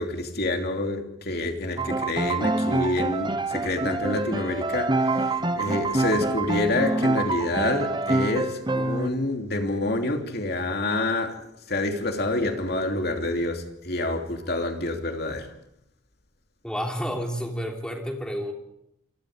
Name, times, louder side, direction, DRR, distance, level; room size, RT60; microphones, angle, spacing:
voice 1, 0.0-15.5, left 2 dB, 50° left, 3.0 m, -27 dB
Piano, 1.8-9.1, right 2 dB, 20° right, 1.0 m, -26 dB
voice 2, 16.6-18.5, equal, 5° left, 3.4 m, -30 dB
28.0 x 23.5 x 5.1 m
head